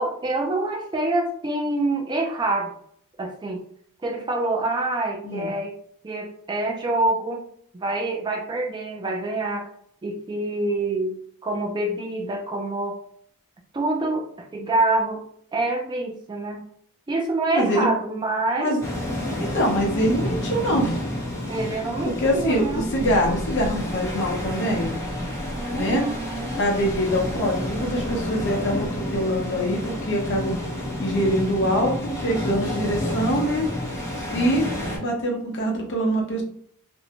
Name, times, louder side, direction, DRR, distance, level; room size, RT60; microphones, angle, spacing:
voice 1, 0.0-2.7 3.2-3.6 4.0-5.7 6.0-7.4 7.7-9.7 10.0-13.0 13.7-15.2 15.5-16.6 17.1-18.7 21.5-22.8 25.5-26.6 34.6-35.2, right 2 dB, 20° right, 2 dB, 0.3 m, -26 dB
voice 2, 17.5-17.9 18.6-18.8 19.4-21.0 22.0-24.9 25.7-26.1 26.6-30.6 31.0-33.7 34.3-34.7 35.0-36.4, equal, 55° left, 0 dB, 0.7 m, -24 dB
sound 1, 18.8-35.0, left 1 dB, 15° left, 0.7 m, -30 dB
2.6 x 2.1 x 2.8 m, 0.63 s
head